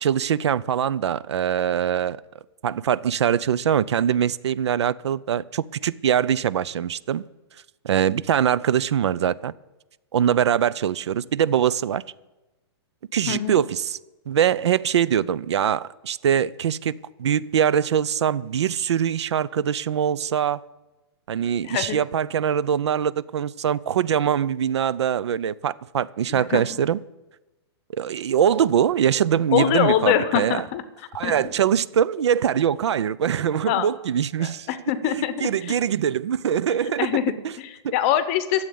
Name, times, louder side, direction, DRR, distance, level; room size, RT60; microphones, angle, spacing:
voice 1, 0.0-2.2 2.6-7.2 7.8-9.5 10.1-12.0 13.1-14.0 14.3-20.6 21.3-27.0 27.9-30.6 31.1-34.7 35.2-37.2 37.8-37.9, right 9 dB, 80° right, 0.6 m, -23 dB
voice 2, 21.6-22.0 26.3-26.6 29.5-30.8 31.2-31.5 33.7-33.9 34.4-35.7 37.0-38.6, left 11 dB, 25° left, 0.7 m, -24 dB
13.0 x 7.8 x 8.5 m
hypercardioid pair, 170°, 14 cm